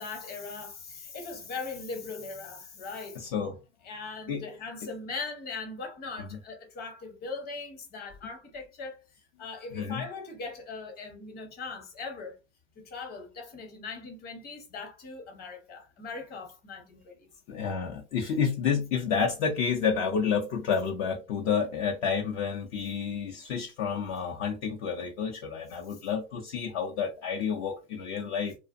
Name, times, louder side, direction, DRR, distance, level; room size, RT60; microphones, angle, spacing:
voice 1, 0.0-3.2 3.8-9.0 9.4-12.4 12.8-17.3, left 4 dB, 25° left, 1.0 m, -40 dB
voice 2, 3.2-3.6 4.3-4.4 9.7-10.0 17.5-28.6, left 6 dB, 55° left, 0.6 m, -30 dB
2.5 x 2.0 x 2.5 m
hypercardioid pair, 105°, 36 cm